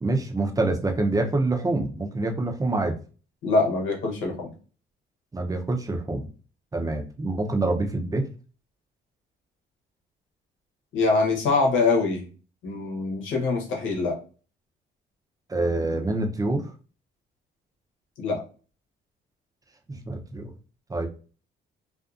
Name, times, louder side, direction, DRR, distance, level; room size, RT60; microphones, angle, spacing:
voice 1, 0.0-3.0 5.3-6.3 6.7-8.3 15.5-16.7 19.9-20.5 20.9-21.1, right 2 dB, 20° right, 3 dB, 0.6 m, -26 dB
voice 2, 3.4-4.5 10.9-12.3 12.6-14.2 18.2-18.4, left 3 dB, 85° left, 0 dB, 0.9 m, -24 dB
2.5 x 2.4 x 2.4 m, 0.37 s
cardioid pair, 90°, 20 cm